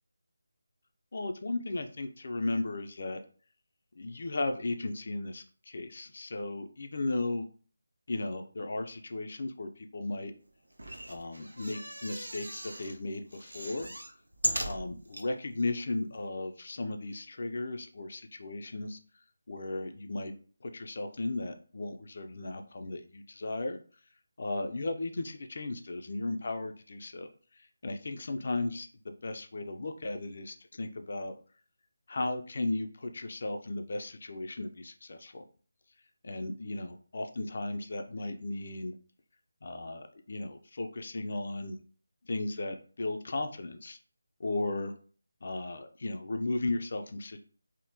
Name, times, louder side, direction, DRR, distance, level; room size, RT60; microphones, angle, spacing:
voice 1, 1.1-3.2 4.0-7.5 8.1-10.3 11.1-13.9 14.6-19.0 19.5-20.3 20.6-23.8 24.4-27.3 27.6-28.9 29.2-31.3 32.1-35.4 36.2-38.9 39.6-41.8 42.2-44.0 44.4-44.9 45.4-47.4, left 2 dB, 50° left, 6 dB, 0.4 m, -35 dB
sound 1, 10.7-13.0 13.3-15.3 15.8-15.9 16.1-16.2, right 1 dB, 85° right, 0.6 m, -37 dB
3.5 x 2.1 x 2.7 m, 0.41 s
figure-of-eight pair, 165°, 0 cm